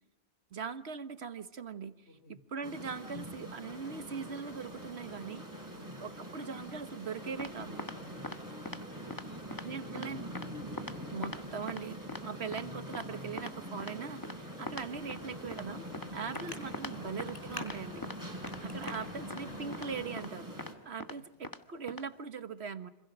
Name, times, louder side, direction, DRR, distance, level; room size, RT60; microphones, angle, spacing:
voice 1, 0.5-5.4 6.0-7.8 9.6-10.3 11.1-12.0 12.2-15.9 16.1-18.0 18.6-20.5 20.8-22.9, right 6 dB, 75° right, 10 dB, 1.6 m, -41 dB
voice 2, 2.1-2.4 5.7-6.0 7.9-8.5 9.2-10.6 16.9-17.2 21.1-21.2, left 2 dB, 80° left, 4 dB, 4.8 m, -57 dB
sound 1, 2.6-20.7, equal, 15° right, 6.1 m, -44 dB
sound 2, 7.4-7.5 7.8-8.0 8.2-8.4 8.7-8.8 9.1-9.2 9.5-9.7 10.0-10.1 10.4-10.5 10.8-10.9 11.2-11.4 11.7-11.8 12.1-12.2 12.5-12.6 12.9-13.0 13.4-13.5 13.8-13.9 14.2-14.3 14.7-14.8 15.1-15.2 15.5-15.6 15.9-16.1 16.4-16.5 16.7-16.9 17.2-17.3 17.6-17.8 18.0-18.2 18.4-18.6 18.9-19.0 19.3-19.4 19.7-19.9 20.2-20.3 20.6-20.7 21.0-21.1 21.4-21.6 21.9-22.0, left 2 dB, 20° left, 1.4 m, -41 dB
Traffic noise roadway noise, 14.7-20.1, left 1 dB, 35° left, 4.5 m, -48 dB
28.0 x 26.5 x 6.2 m, 0.94 s
omnidirectional pair, 1.1 m